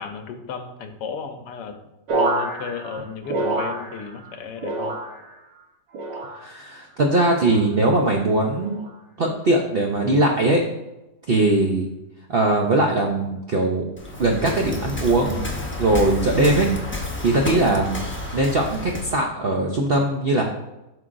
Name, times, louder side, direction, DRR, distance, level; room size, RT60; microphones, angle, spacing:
voice 1, 0.0-1.8 2.1-5.0, left 6 dB, 90° left, 6 dB, 1.4 m, -34 dB
sound 1, 2.1-4.3 4.6-5.4 5.9-6.6 7.3-7.7 8.6-9.0 9.9-10.2, right 2 dB, 90° right, 1.7 m, -28 dB
voice 2, 6.3-8.8 9.2-10.6 11.3-11.9 12.3-13.9 14.2-15.4 15.8-16.7 17.2-18.1 18.3-20.4, right 2 dB, 70° right, 1 dB, 0.5 m, -20 dB
Waves surf, 14.0-19.2, left 2 dB, 15° left, 0.4 m, -30 dB
7.7 x 5.6 x 2.6 m, 0.96 s
omnidirectional pair, 1.9 m